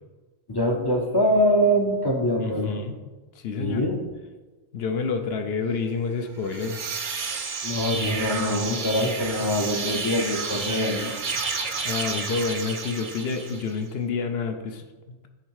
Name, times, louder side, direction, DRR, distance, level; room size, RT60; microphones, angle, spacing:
voice 1, 0.5-2.8 3.6-4.0 7.6-11.1, equal, 30° left, 2 dB, 0.5 m, -24 dB
voice 2, 2.2-2.9 3.3-3.8 4.7-6.9 11.8-15.3, left 5 dB, 60° left, 7 dB, 0.7 m, -29 dB
sound 1, 6.4-13.8, right 4 dB, 50° right, 0.6 m, -31 dB
9.6 x 3.5 x 4.7 m, 1.2 s
omnidirectional pair, 1.4 m